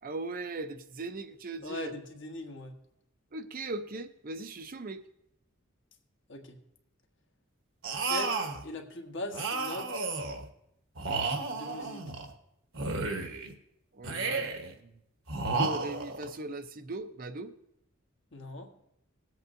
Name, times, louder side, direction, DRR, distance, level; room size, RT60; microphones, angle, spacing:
voice 1, 0.0-2.0 3.3-5.0 13.9-14.5 14.8-15.0 15.6-17.5, right 2 dB, 45° right, 10 dB, 0.6 m, -39 dB
voice 2, 1.6-2.7 6.3-6.6 8.1-10.0 11.4-12.1 18.3-18.7, left 2 dB, 60° left, 2 dB, 1.4 m, -40 dB
sound 1, 7.8-8.6 9.3-10.4 11.0-12.3 12.7-13.5 14.0-14.7 15.3-16.3, right 3 dB, 65° right, 1.2 m, -32 dB
20.5 x 8.2 x 2.6 m, 0.79 s
head